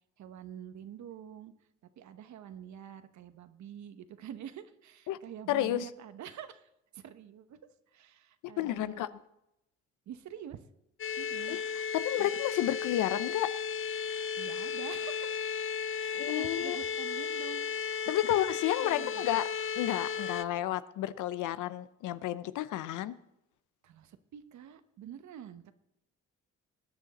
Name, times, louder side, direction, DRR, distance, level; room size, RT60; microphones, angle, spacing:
voice 1, 0.2-1.5 2.0-7.6 7.9-9.1 10.1-10.6 11.2-11.6 12.2-12.3 14.4-15.4 16.0-18.0 18.3-18.4 18.7-19.2 23.8-25.7, right 9 dB, 70° right, 11 dB, 1.0 m, -47 dB
voice 2, 5.5-5.9 8.4-9.1 11.5-13.5 16.1-16.8 18.1-19.5 19.8-23.1, left 13 dB, 85° left, 14 dB, 0.7 m, -31 dB
sound 1, 11.0-20.4, left 6 dB, 45° left, 0.7 m, -34 dB
20.5 x 9.1 x 4.1 m, 0.86 s
cardioid pair, 90°, 30 cm